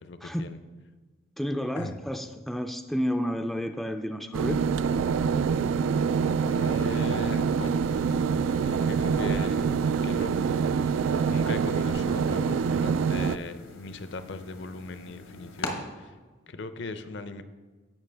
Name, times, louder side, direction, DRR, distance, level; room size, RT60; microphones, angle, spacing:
voice 1, 0.0-0.6 1.7-2.0 6.5-7.7 8.6-9.7 10.0-10.3 10.8-10.9 11.2-16.1 16.5-17.4, left 3 dB, 60° left, 11 dB, 0.6 m, -38 dB
voice 2, 1.4-4.6, equal, ahead, 6 dB, 0.3 m, -31 dB
sound 1, 4.3-13.4, right 6 dB, 85° right, 0.3 m, -25 dB
sound 2, 6.1-15.7, left 2 dB, 90° left, 1.4 m, -45 dB
16.0 x 5.7 x 3.4 m, 1.3 s
head